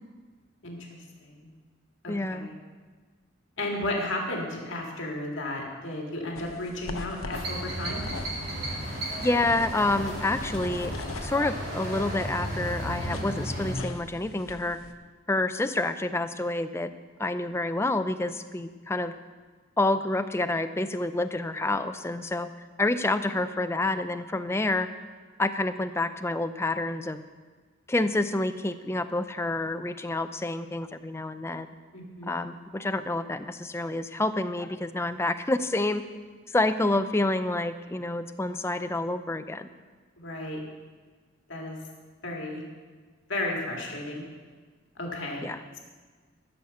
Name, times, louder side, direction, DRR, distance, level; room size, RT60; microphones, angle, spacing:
voice 1, 0.6-1.5 2.0-2.5 3.6-8.0 31.9-32.4 40.2-40.6 41.5-41.8 42.2-42.6 43.3-44.2 45.0-45.5, left 1 dB, 65° left, -1 dB, 2.0 m, -33 dB
voice 2, 2.1-2.5 9.2-10.9 11.2-14.8 15.3-16.9 17.2-19.1 19.8-22.5 22.8-24.9 25.4-27.2 27.9-31.7 32.3-36.0 36.5-39.7 45.4-45.6, left 2 dB, 10° left, 10 dB, 0.4 m, -28 dB
sound 1, 6.4-14.9, left 3 dB, 85° left, 0.8 m, -42 dB
sound 2, 7.3-13.8, right 1 dB, 50° right, 2.9 m, -34 dB
13.0 x 6.5 x 7.0 m, 1.5 s
head